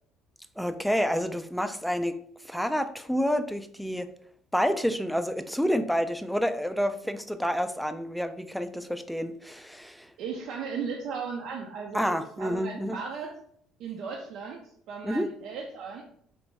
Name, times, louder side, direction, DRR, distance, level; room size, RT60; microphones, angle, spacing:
voice 1, 0.6-2.1 2.4-4.1 4.5-10.1 11.9-13.0 15.0-15.3, equal, ahead, 10 dB, 0.3 m, -28 dB
voice 2, 10.2-13.4 13.8-16.0, right 5 dB, 70° right, 0 dB, 0.4 m, -36 dB
3.2 x 2.6 x 3.1 m, 0.63 s
supercardioid pair, 85°, 0 cm